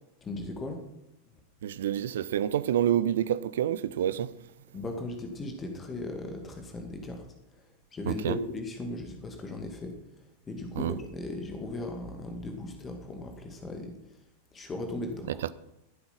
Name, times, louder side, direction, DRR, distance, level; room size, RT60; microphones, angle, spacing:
voice 1, 0.2-0.8 4.7-7.3 7.9-9.9 10.5-13.9 14.5-15.4, left 2 dB, 20° left, 2.1 m, -37 dB
voice 2, 1.6-4.3 8.1-8.4 10.8-11.0 15.4-15.5, right 10 dB, 60° right, 0.6 m, -28 dB
15.0 x 7.9 x 5.9 m
figure-of-eight pair, 90°, 0 cm